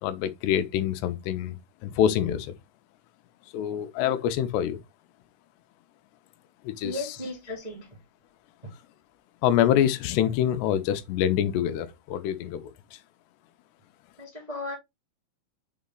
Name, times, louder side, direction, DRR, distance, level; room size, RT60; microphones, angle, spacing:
voice 1, 0.0-2.5 3.5-4.8 6.6-6.9 9.4-13.0, left 10 dB, 90° left, 3.0 m, -26 dB
voice 2, 6.8-8.0 8.6-8.7 14.2-14.7, left 2 dB, 25° right, 0.9 m, -36 dB
6.9 x 4.2 x 3.8 m
omnidirectional pair, 4.8 m